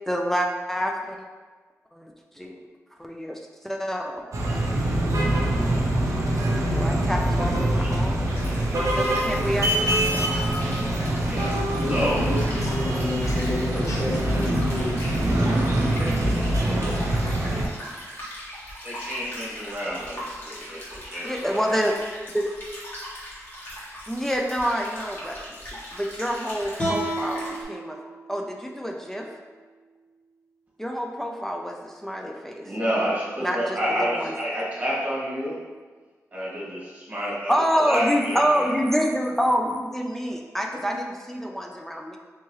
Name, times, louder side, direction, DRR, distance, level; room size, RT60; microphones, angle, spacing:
voice 1, 0.1-1.2 1.9-2.6 3.0-4.2 6.7-8.2 8.7-10.3 21.2-22.0 22.3-22.5 24.1-25.4 25.9-28.0 28.3-29.3 30.8-32.6 33.4-34.3 37.5-42.2, equal, 5° left, 1 dB, 0.3 m, -27 dB
sound 1, 4.3-17.7, right 1 dB, 65° right, 0.6 m, -24 dB
sound 2, 8.3-27.6, equal, 40° left, 1.4 m, -39 dB
voice 2, 11.3-16.0 16.4-16.7 18.2-18.3, left 2 dB, 65° left, -3 dB, 0.8 m, -31 dB
voice 3, 11.9-12.2 16.6-16.8 18.8-21.7 32.6-35.6 36.3-38.7, equal, 25° right, -7 dB, 1.5 m, -29 dB
sound 3, 26.8-29.9, right 1 dB, 20° left, 1.4 m, -33 dB
3.4 x 2.9 x 3.1 m, 1.4 s
cardioid pair, 75°, 6 cm